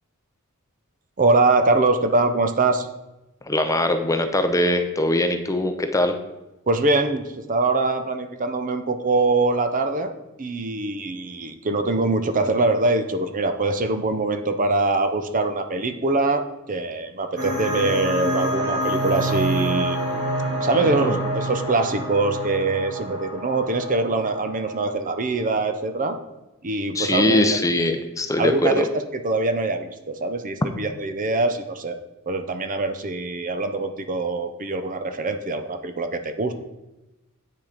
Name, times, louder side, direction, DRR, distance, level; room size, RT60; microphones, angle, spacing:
voice 1, 1.2-2.9 6.7-10.1 10.4-20.0 20.6-26.2 26.6-27.4 28.4-28.9 29.2-32.0 32.3-36.5, right 3 dB, 35° right, 8 dB, 0.7 m, -23 dB
voice 2, 3.5-6.2 20.7-21.2 26.9-28.9, left 1 dB, 15° left, 7 dB, 0.7 m, -22 dB
sound 1, 17.4-25.6, right 1 dB, 55° right, 3.3 m, -27 dB
8.7 x 6.2 x 5.0 m, 1.0 s
head